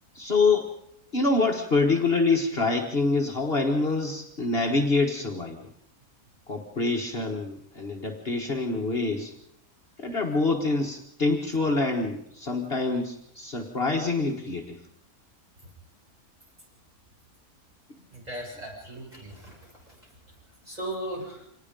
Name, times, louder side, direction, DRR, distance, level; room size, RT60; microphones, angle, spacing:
voice 1, 0.1-0.7 1.1-5.6 6.5-9.4 10.0-14.8, left 3 dB, 40° left, 2 dB, 1.7 m, -26 dB
voice 2, 18.1-20.0 20.6-21.4, right 1 dB, 25° right, -2 dB, 6.9 m, -37 dB
25.5 x 19.5 x 5.4 m, 0.70 s
omnidirectional pair, 1.5 m